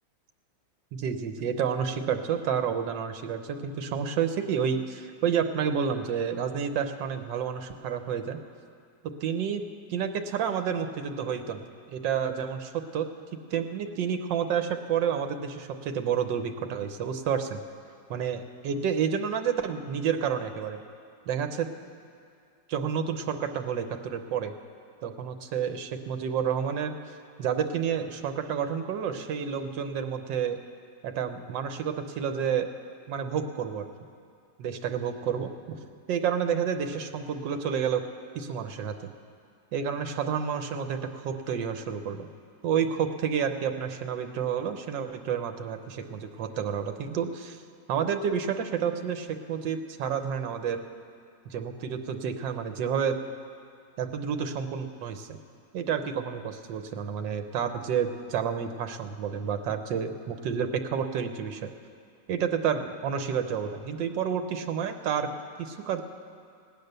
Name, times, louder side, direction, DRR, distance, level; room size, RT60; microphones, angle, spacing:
voice 1, 0.9-8.4 9.2-9.6 9.9-11.6 11.9-13.1 13.5-17.6 18.1-20.8 21.3-21.7 22.7-24.5 25.0-26.9 27.4-30.6 31.0-32.7 33.1-33.8 34.6-35.8 36.1-38.0 38.3-39.1 39.7-42.3 42.6-47.6 47.9-50.8 51.5-53.2 54.0-55.4 55.7-61.7 62.3-65.3 65.6-66.0, right 7 dB, 80° right, 7 dB, 1.5 m, -30 dB
18.0 x 8.9 x 6.7 m, 2.3 s
omnidirectional pair, 2.0 m